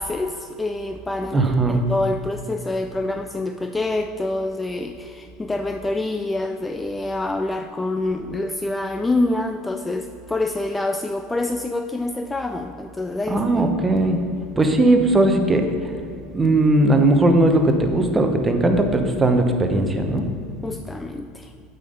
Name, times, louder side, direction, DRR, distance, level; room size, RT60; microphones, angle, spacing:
voice 1, 0.0-13.7 20.6-21.5, left 2 dB, 15° left, 6 dB, 0.4 m, -26 dB
voice 2, 1.3-1.8 13.3-14.3 14.6-15.9 16.3-20.3, right 2 dB, 20° right, 5 dB, 0.9 m, -18 dB
8.4 x 5.4 x 5.1 m, 2.4 s
supercardioid pair, 100°, 0 cm